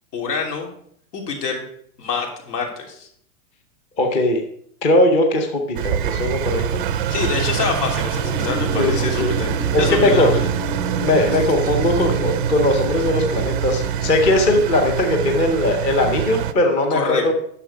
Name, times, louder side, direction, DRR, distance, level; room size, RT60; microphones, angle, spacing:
voice 1, 0.1-0.7 1.1-1.6 2.0-3.1 7.1-10.5 16.9-17.3, left 5 dB, 80° left, 2 dB, 3.0 m, -26 dB
voice 2, 4.0-4.4 4.8-6.8 8.7-9.3 9.7-10.3 11.0-17.3, left 1 dB, 15° left, 3 dB, 0.5 m, -19 dB
Engine, 5.8-16.5, right 10 dB, 35° right, 0.4 m, -24 dB
sound 1, 6.8-14.8, left 4 dB, 35° left, 3.3 m, -34 dB
9.8 x 6.5 x 4.9 m, 0.65 s
supercardioid pair, 160°, 47 cm